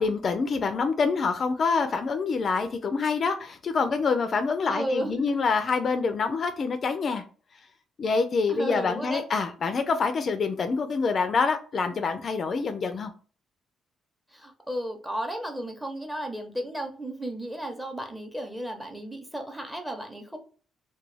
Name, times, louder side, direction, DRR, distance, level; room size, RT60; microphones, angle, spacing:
voice 1, 0.0-7.2 8.0-13.1, left 4 dB, 50° left, 8 dB, 0.3 m, -26 dB
voice 2, 4.7-5.4 8.5-9.2 14.3-20.4, right 1 dB, 5° right, 4 dB, 0.7 m, -34 dB
2.3 x 2.2 x 3.2 m, 0.39 s
cardioid pair, 90°, 0 cm